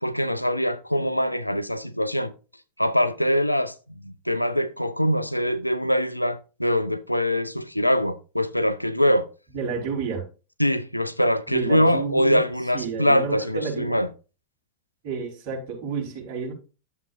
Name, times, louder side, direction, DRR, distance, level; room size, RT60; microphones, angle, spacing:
voice 1, 0.0-2.3 2.8-3.7 4.0-9.3 10.6-14.1, equal, 90° left, 0.5 m, -23 dB
voice 2, 9.5-10.2 11.5-12.4 12.7-14.0 15.0-16.5, right 5 dB, 45° right, 4.0 m, -30 dB
11.0 x 7.3 x 2.6 m
figure-of-eight pair, 90°, 0 cm